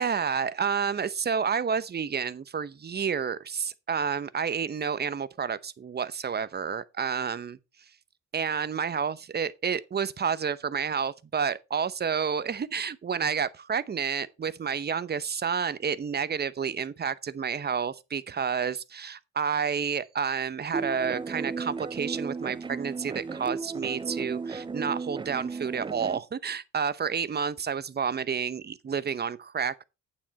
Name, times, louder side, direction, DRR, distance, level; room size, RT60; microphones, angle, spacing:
voice 1, 0.0-7.6 8.3-29.8, right 6 dB, 35° right, 0.8 m, -30 dB
sound 1, 20.7-26.2, right 4 dB, 15° right, 0.4 m, -35 dB
8.6 x 7.5 x 4.3 m
cardioid pair, 90°, 30 cm